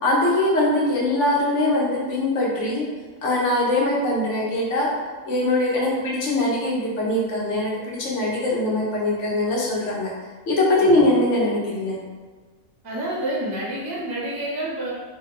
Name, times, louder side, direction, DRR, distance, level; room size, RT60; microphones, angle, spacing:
voice 1, 0.0-2.8 3.2-4.9 5.3-10.1 10.5-12.0, left 1 dB, 60° left, -4 dB, 1.1 m, -22 dB
voice 2, 10.8-11.1 12.8-14.9, right 1 dB, 25° right, -5 dB, 0.5 m, -29 dB
3.3 x 2.3 x 3.2 m, 1.4 s
omnidirectional pair, 1.5 m